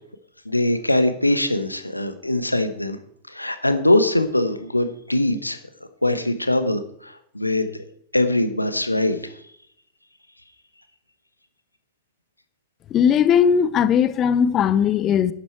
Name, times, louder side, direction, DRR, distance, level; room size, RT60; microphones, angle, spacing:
voice 1, 0.4-3.0 3.3-5.6 6.0-7.6 8.1-9.3, left 1 dB, 85° left, 1.1 m, -22 dB
voice 2, 12.9-15.3, left 8 dB, 30° left, 0.8 m, -18 dB
11.5 x 10.5 x 4.6 m
figure-of-eight pair, 90°, 0 cm